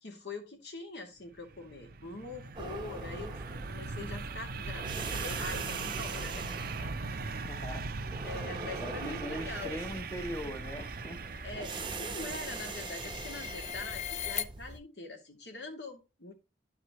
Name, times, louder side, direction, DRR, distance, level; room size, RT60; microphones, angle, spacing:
voice 1, 0.0-6.4 6.8-7.6 8.2-10.0 11.4-16.3, left 3 dB, 70° left, 2.3 m, -44 dB
sound 1, 1.3-13.0, right 4 dB, 55° right, 0.7 m, -40 dB
sound 2, 2.6-14.8, right 3 dB, 25° right, 0.8 m, -42 dB
voice 2, 7.5-7.9 8.8-11.2, left 1 dB, 15° left, 0.9 m, -40 dB
sound 3, 9.7-14.4, left 9 dB, 40° left, 0.5 m, -42 dB
11.0 x 4.8 x 3.0 m
head